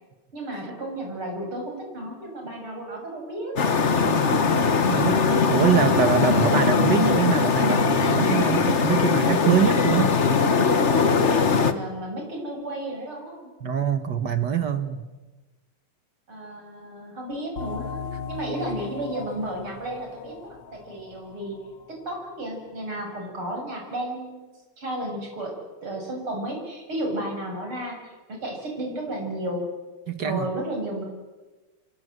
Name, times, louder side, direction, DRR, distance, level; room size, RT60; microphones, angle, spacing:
voice 1, 0.3-3.6 11.5-13.5 16.3-24.5 24.8-25.5 25.8-29.6 30.2-31.1, right 1 dB, 75° right, 1 dB, 7.8 m, -33 dB
sound 1, 3.6-11.7, left 5 dB, 40° left, 1.4 m, -20 dB
voice 2, 4.0-10.2 13.6-15.1 30.1-30.5, right 8 dB, 55° right, 10 dB, 1.9 m, -24 dB
sound 2, 17.6-22.8, left 6 dB, 65° left, 1.9 m, -38 dB
29.5 x 23.5 x 7.9 m, 1.2 s
omnidirectional pair, 2.4 m